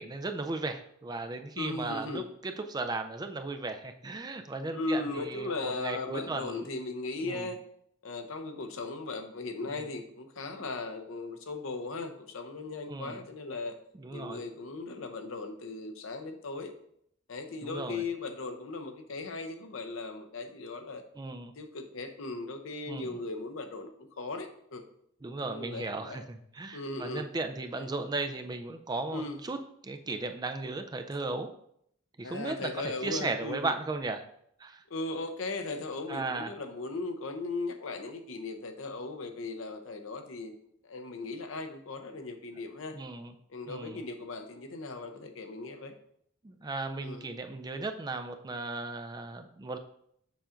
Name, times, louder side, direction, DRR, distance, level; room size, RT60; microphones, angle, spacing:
voice 1, 0.0-6.7 7.2-7.5 9.7-9.9 12.9-13.2 13.9-14.4 17.6-18.0 21.2-21.5 22.9-23.2 25.2-29.6 29.8-31.5 32.2-34.2 34.6-34.8 36.1-36.5 42.9-43.3 43.7-44.0 46.4-49.8, right 3 dB, 20° right, 7 dB, 0.4 m, -36 dB
voice 2, 1.6-2.3 4.7-7.6 8.0-13.7 14.1-16.7 17.3-21.0 21.6-24.8 25.4-26.2 26.7-27.3 27.7-27.9 29.1-29.4 32.2-33.7 34.9-40.5 40.8-42.9 43.5-45.9 47.0-47.3, left 3 dB, 75° left, 6 dB, 0.7 m, -37 dB
6.9 x 2.5 x 5.6 m, 0.71 s
head